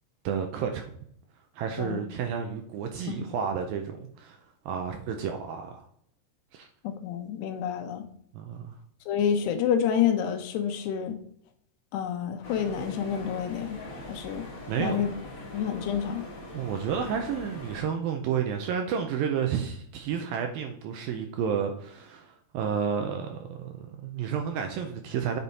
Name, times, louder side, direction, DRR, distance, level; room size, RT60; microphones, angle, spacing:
voice 1, 0.2-0.9 1.5-5.9 6.5-6.7 8.3-8.8 14.7-15.0 16.5-25.4, right 7 dB, 80° right, 4 dB, 2.2 m, -31 dB
voice 2, 6.8-8.0 9.1-11.2 11.9-14.5 14.8-15.1 15.5-16.2, left 8 dB, 80° left, 7 dB, 2.9 m, -28 dB
sound 1, 12.4-17.8, left 1 dB, 50° left, 0.9 m, -41 dB
9.4 x 5.4 x 4.2 m, 0.66 s
omnidirectional pair, 4.8 m